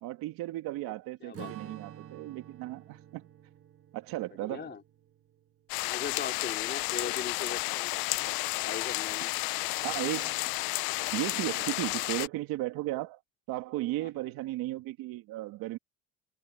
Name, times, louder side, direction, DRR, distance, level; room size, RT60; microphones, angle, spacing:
voice 1, 0.0-3.3 3.9-4.8 9.8-10.5 11.1-13.2 13.5-15.8, right 17 dB, 80° right, 2.3 m, -35 dB
voice 2, 1.2-1.8 4.4-4.8 5.8-7.9 8.6-9.3 14.0-14.1, left 6 dB, 30° left, 3.5 m, -39 dB
Strum, 1.3-6.0, right 10 dB, 40° right, 1.7 m, -50 dB
sound 1, 5.7-12.3, left 24 dB, 85° left, 0.6 m, -32 dB
cardioid pair, 130°, 35 cm